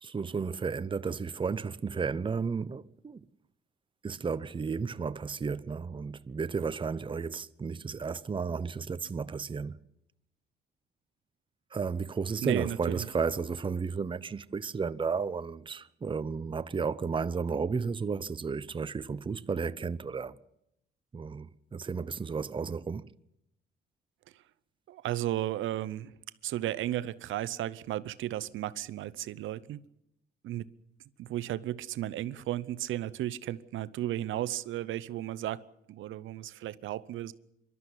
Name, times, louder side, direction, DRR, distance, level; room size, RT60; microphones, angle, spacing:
voice 1, 0.0-3.2 4.0-9.8 11.7-20.4 21.1-23.1, right 5 dB, 25° right, 0.7 m, -33 dB
voice 2, 12.4-13.1 24.9-26.1 26.4-29.8 30.4-30.6 31.2-37.3, right 13 dB, 80° right, 0.8 m, -34 dB
24.5 x 12.5 x 9.9 m
cardioid pair, 90°, 20 cm